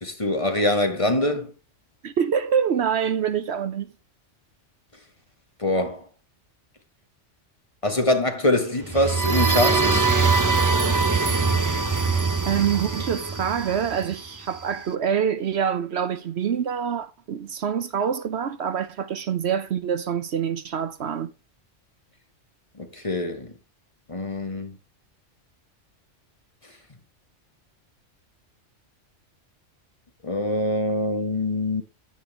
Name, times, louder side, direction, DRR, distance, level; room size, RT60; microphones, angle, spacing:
voice 1, 0.0-1.5 5.6-6.0 7.8-10.1 22.8-23.5 24.1-24.8 30.2-31.8, left 1 dB, 25° left, 1.6 m, -24 dB
voice 2, 2.0-3.9 12.4-21.3, right 8 dB, 65° right, 1.0 m, -26 dB
sound 1, 8.8-14.6, right 4 dB, 20° right, 0.7 m, -22 dB
9.9 x 9.7 x 3.2 m
omnidirectional pair, 1.2 m